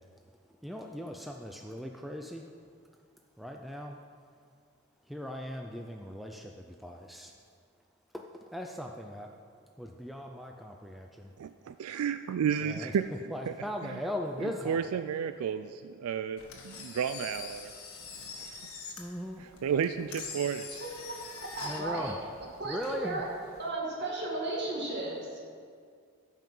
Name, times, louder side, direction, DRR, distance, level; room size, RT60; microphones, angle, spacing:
voice 1, 0.6-2.4 3.4-4.0 5.1-6.5 6.8-7.3 8.1-8.2 8.5-9.3 9.8-11.1 12.6-12.9 13.3-15.0 19.0-19.4 21.6-22.2 22.6-23.2, equal, ahead, 2 dB, 0.4 m, -38 dB
voice 2, 11.4-13.1 13.5-13.6 13.8-14.0 14.4-17.7 18.4-18.7 19.4-20.7, right 7 dB, 85° right, 11 dB, 0.3 m, -32 dB
Engine, 16.4-23.7, left 5 dB, 85° left, 1.6 m, -45 dB
voice 3, 21.6-22.2 22.6-23.3 23.6-25.4, right 2 dB, 50° right, -3 dB, 2.2 m, -34 dB
14.0 x 5.7 x 5.4 m, 2.2 s
head